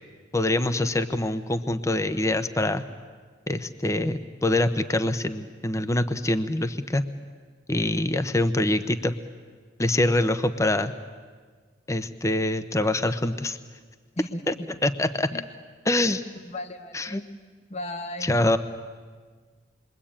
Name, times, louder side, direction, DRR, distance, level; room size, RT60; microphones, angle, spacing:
voice 1, 0.3-2.8 3.5-7.0 7.7-9.1 9.8-10.9 11.9-13.6 14.5-14.6 14.8-15.3 15.8-16.2 16.9-17.2 18.2-18.6, left 1 dB, 15° left, 10 dB, 0.8 m, -24 dB
voice 2, 14.2-14.7 15.3-15.5 16.4-17.3 17.7-18.4, left 1 dB, 35° left, 8 dB, 1.4 m, -36 dB
28.5 x 22.5 x 8.8 m, 1.5 s
head